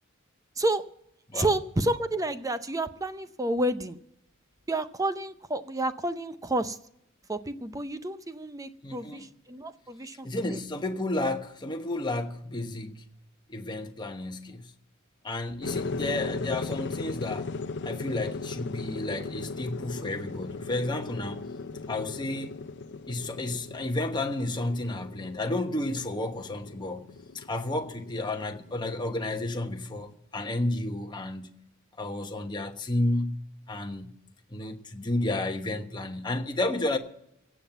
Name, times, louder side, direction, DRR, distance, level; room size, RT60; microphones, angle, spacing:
voice 1, 1.3-4.0 4.7-6.8 7.3-10.6, right 1 dB, 15° right, 0.6 m, -30 dB
voice 2, 8.8-9.3 10.2-13.1 13.5-14.7 15.2-17.5 17.8-21.4 21.9-22.5 23.1-27.1 27.3-31.6 32.0-33.4 33.7-34.2 34.5-37.0, left 2 dB, 20° left, 1.1 m, -31 dB
sound 1, 15.6-30.1, left 3 dB, 55° left, 0.6 m, -38 dB
16.5 x 7.4 x 8.0 m
head